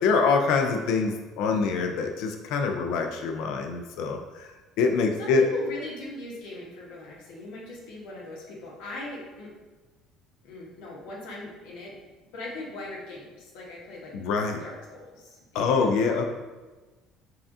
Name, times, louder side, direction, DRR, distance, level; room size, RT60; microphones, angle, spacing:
voice 1, 0.0-4.5 4.8-5.4 14.1-14.6 15.5-16.3, left 4 dB, 70° left, 4 dB, 0.4 m, -25 dB
voice 2, 5.2-9.5 10.4-12.0 12.3-14.1 14.6-16.0, left 2 dB, 90° left, -4 dB, 1.1 m, -40 dB
5.5 x 2.4 x 2.7 m, 1.3 s
cardioid pair, 160°, 0 cm